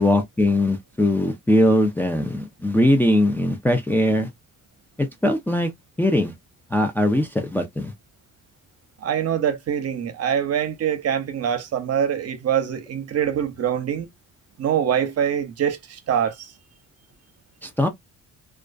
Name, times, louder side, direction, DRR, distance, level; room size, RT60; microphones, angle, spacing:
voice 1, 0.0-4.3 5.0-5.7 6.0-6.3 6.7-7.9 17.6-17.9, left 1 dB, 5° left, 0.4 m, -20 dB
voice 2, 9.0-14.1 14.6-16.5, right 9 dB, 55° right, 0.7 m, -24 dB
2.4 x 2.3 x 2.2 m
cardioid pair, 90°, 30 cm